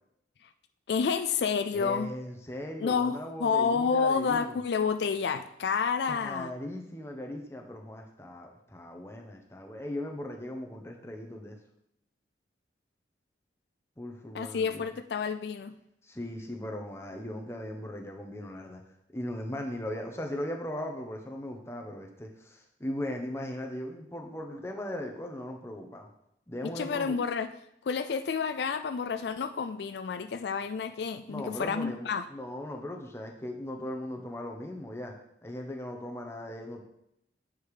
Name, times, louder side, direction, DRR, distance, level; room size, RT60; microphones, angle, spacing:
voice 1, 0.9-2.1 2.8-6.5 14.3-15.8 26.8-27.5 27.9-32.2, left 5 dB, 75° left, 9 dB, 0.4 m, -29 dB
voice 2, 1.7-4.6 6.1-11.6 14.0-14.9 16.0-18.8 19.1-26.1 26.5-27.2 31.3-35.1 35.4-36.8, left 1 dB, 15° left, 2 dB, 1.0 m, -38 dB
7.8 x 5.0 x 4.9 m, 0.77 s
head